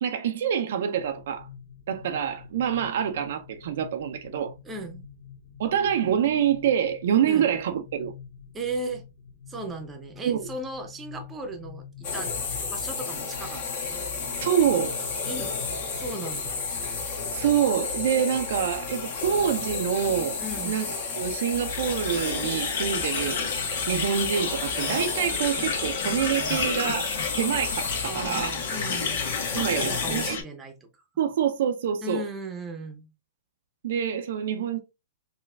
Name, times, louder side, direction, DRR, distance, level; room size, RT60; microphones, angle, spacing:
voice 1, 0.0-1.5 1.9-4.5 5.6-8.1 10.2-10.5 14.4-15.0 17.3-20.4 20.6-20.9 21.2-23.4 23.9-28.5 29.5-30.4 31.2-32.3 33.8-34.8, right 9 dB, 65° right, 0.4 m, -26 dB
sound 1, 0.9-16.4, left 7 dB, 25° left, 1.1 m, -47 dB
voice 2, 4.6-5.1 7.3-7.5 8.5-9.0 9.5-12.3 12.7-14.1 15.3-15.5 15.9-16.7 20.4-20.8 28.0-29.2 29.6-30.9 32.0-33.1, right 2 dB, 15° right, 0.7 m, -36 dB
sound 2, 12.0-30.3, left 4 dB, 50° left, 1.1 m, -32 dB
sound 3, 21.7-30.4, left 5 dB, 65° left, 1.0 m, -32 dB
4.0 x 2.2 x 2.2 m
hypercardioid pair, 130°, 0 cm